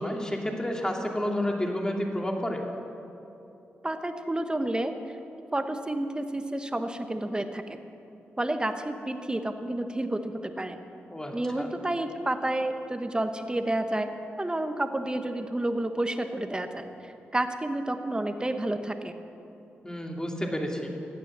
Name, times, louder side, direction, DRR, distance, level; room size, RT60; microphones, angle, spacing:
voice 1, 0.0-2.6 11.1-11.7 19.8-20.9, left 1 dB, 15° left, 1 dB, 2.7 m, -30 dB
voice 2, 3.8-4.9 5.5-7.8 8.4-10.8 11.3-14.1 14.4-19.2, right 1 dB, 20° right, 7 dB, 1.3 m, -30 dB
15.5 x 9.1 x 7.5 m, 2.9 s
supercardioid pair, 50°, 5 cm